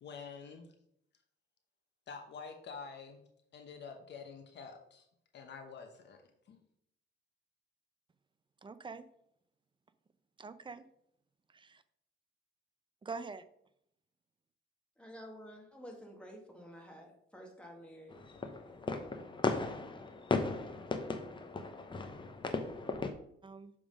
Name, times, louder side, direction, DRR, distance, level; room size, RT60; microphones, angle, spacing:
voice 1, 0.0-0.7 2.1-3.2 3.5-5.1 5.3-6.2 6.5-6.6, left 5 dB, 60° left, 4 dB, 1.0 m, -47 dB
voice 2, 8.6-9.1 10.4-10.9 11.5-11.8 13.0-13.5 23.4-23.7, right 4 dB, 25° right, 13 dB, 0.5 m, -45 dB
voice 3, 15.0-18.2, equal, 5° left, 0 dB, 1.8 m, -51 dB
sound 1, 18.1-23.1, left 3 dB, 25° left, 0.8 m, -36 dB
6.9 x 3.7 x 5.0 m, 0.72 s
cardioid pair, 90°, 20 cm